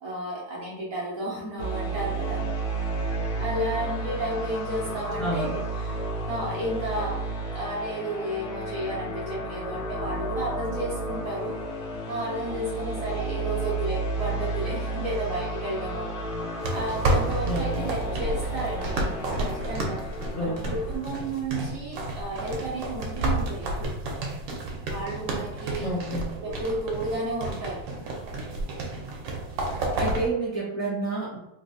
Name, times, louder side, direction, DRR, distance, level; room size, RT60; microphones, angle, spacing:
voice 1, 0.0-2.5 3.4-7.2 7.5-11.6 12.1-16.2 16.7-19.0 19.3-20.1 20.4-23.9 24.9-25.9 26.4-27.8, right 1 dB, 60° right, -5 dB, 0.9 m, -32 dB
sound 1, 1.6-21.1, right 2 dB, 80° left, 1.5 m, -32 dB
voice 2, 5.2-5.5 17.4-17.8 20.3-20.8 25.8-26.3 28.4-28.6 29.6-31.4, right 2 dB, 20° left, -9 dB, 0.4 m, -30 dB
sound 2, 16.6-30.3, right 2 dB, 75° right, 1.4 m, -31 dB
3.9 x 2.7 x 2.6 m, 0.91 s
omnidirectional pair, 2.1 m